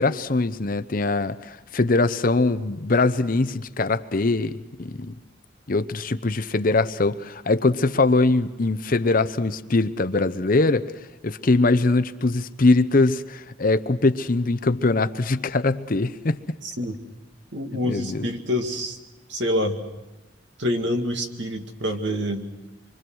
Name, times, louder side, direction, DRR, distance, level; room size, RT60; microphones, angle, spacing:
voice 1, 0.0-5.1 5.7-10.9 11.2-16.6 17.8-18.3, left 3 dB, 45° left, 12 dB, 0.7 m, -22 dB
voice 2, 16.6-17.0 17.5-19.0 19.3-19.8 20.6-22.4, left 1 dB, 65° right, 4 dB, 2.2 m, -26 dB
26.5 x 24.5 x 6.2 m, 1.0 s
head